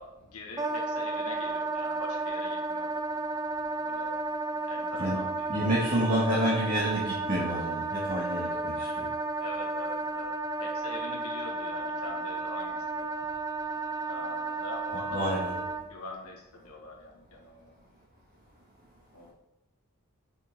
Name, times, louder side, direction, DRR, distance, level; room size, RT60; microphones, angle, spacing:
voice 1, 0.0-3.0 3.8-4.1 4.7-5.6 9.4-13.1 14.0-15.5 15.8-17.8 19.1-19.3, left 2 dB, 90° left, -1 dB, 1.9 m, -43 dB
Wind instrument woodwind instrument, 0.6-15.8, right 3 dB, 15° right, 0.4 m, -33 dB
voice 2, 5.5-9.1 15.1-15.6, right 1 dB, 40° right, -7 dB, 1.8 m, -29 dB
6.3 x 6.3 x 3.7 m, 0.91 s
head